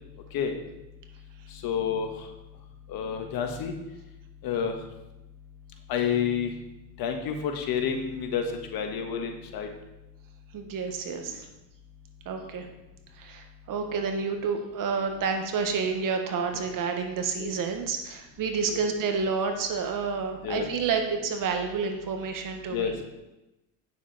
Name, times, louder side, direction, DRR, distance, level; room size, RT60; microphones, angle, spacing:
voice 1, 1.5-2.3 2.9-3.7 4.4-4.8 5.9-6.5 7.0-9.7 17.4-17.5 18.7-18.8 20.4-20.7 22.7-23.0, left 7 dB, 60° left, 4 dB, 1.6 m, -29 dB
voice 2, 10.5-11.5 12.2-12.7 13.1-23.0, right 5 dB, 50° right, 4 dB, 1.6 m, -29 dB
9.3 x 6.9 x 4.2 m, 0.97 s
supercardioid pair, 100°, 41 cm